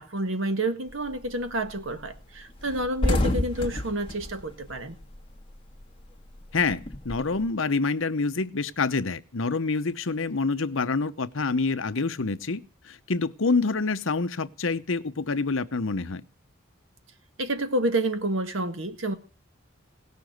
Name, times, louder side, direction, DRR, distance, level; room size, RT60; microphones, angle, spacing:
voice 1, 0.0-5.0 17.4-19.1, right 1 dB, 65° right, 8 dB, 1.7 m, -29 dB
sound 1, 0.9-1.2 1.6-1.8 2.0-2.2 2.5-5.5 5.8-7.4, left 1 dB, 25° left, 1.7 m, -29 dB
voice 2, 6.5-16.2, left 4 dB, 70° left, 11 dB, 0.9 m, -27 dB
17.5 x 6.9 x 7.9 m, 0.38 s
head